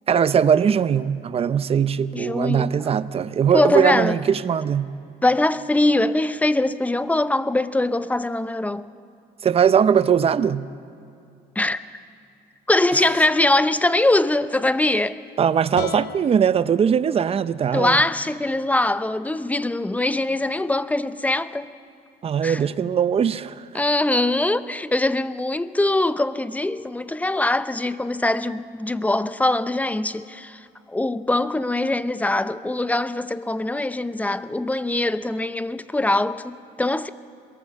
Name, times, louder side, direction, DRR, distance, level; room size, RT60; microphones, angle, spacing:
voice 1, 0.1-4.9 9.4-10.7 15.4-18.0 22.2-23.7, right 7 dB, 35° right, 0.7 m, -20 dB
voice 2, 2.1-2.7 3.5-4.2 5.2-8.9 11.6-11.8 12.7-15.2 17.7-21.7 22.4-22.6 23.7-37.1, left 2 dB, 10° left, 0.7 m, -22 dB
sound 1, 15.7-18.9, left 10 dB, 80° left, 1.0 m, -40 dB
22.5 x 18.0 x 7.4 m
cardioid pair, 110°, 17 cm